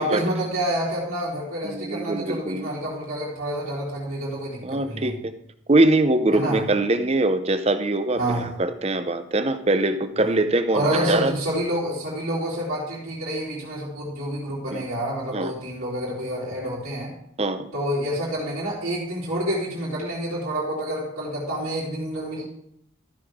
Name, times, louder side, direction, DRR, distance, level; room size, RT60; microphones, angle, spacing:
voice 1, 0.0-5.1 6.3-6.6 8.2-8.5 10.7-17.1 17.7-22.4, right 1 dB, 90° right, -8 dB, 3.0 m, -28 dB
voice 2, 1.6-2.7 4.6-5.3 5.7-11.3 14.7-14.9 15.3-15.5 17.4-17.7, right 2 dB, 30° right, 10 dB, 0.6 m, -23 dB
13.5 x 6.6 x 3.6 m, 0.73 s
head